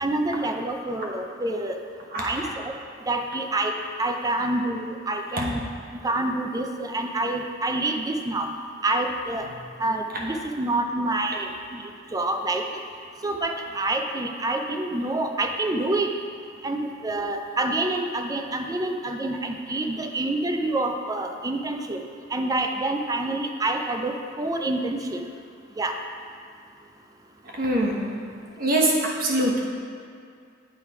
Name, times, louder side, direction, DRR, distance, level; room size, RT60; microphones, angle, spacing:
voice 1, 0.0-1.8 2.2-2.7 3.1-3.7 4.0-5.6 6.0-8.5 8.8-9.5 9.8-11.8 12.1-12.6 13.2-16.1 16.6-22.0 22.3-25.2 25.8-25.9, right 2 dB, 20° right, 4 dB, 0.4 m, -27 dB
voice 2, 27.5-28.0 28.6-29.6, right 1 dB, 45° right, -2 dB, 1.0 m, -23 dB
8.8 x 3.2 x 4.7 m, 2.2 s
head